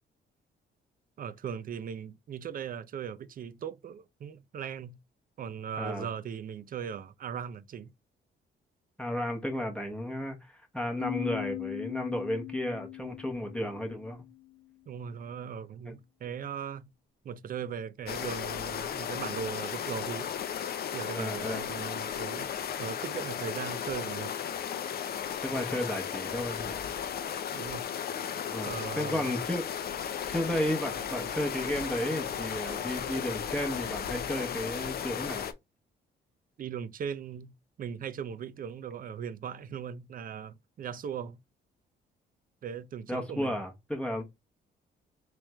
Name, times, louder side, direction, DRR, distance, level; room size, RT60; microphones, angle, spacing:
voice 1, 1.2-5.0 5.4-7.9 14.9-16.9 17.2-20.3 20.9-22.5 22.8-24.3 27.5-27.9 28.6-29.2 36.6-41.4 42.6-43.6, right 7 dB, 45° right, 0.5 m, -39 dB
voice 2, 9.0-14.2 15.9-16.0 21.1-21.6 25.4-26.9 28.5-29.6 30.3-35.5 43.1-44.2, left 1 dB, 5° left, 0.9 m, -33 dB
sound 1, 11.0-14.6, left 18 dB, 80° left, 0.8 m, -40 dB
sound 2, 18.1-35.5, left 8 dB, 50° left, 0.6 m, -35 dB
sound 3, 28.5-34.0, right 2 dB, 25° right, 1.0 m, -53 dB
3.4 x 3.2 x 3.0 m
cardioid pair, 90°, 20 cm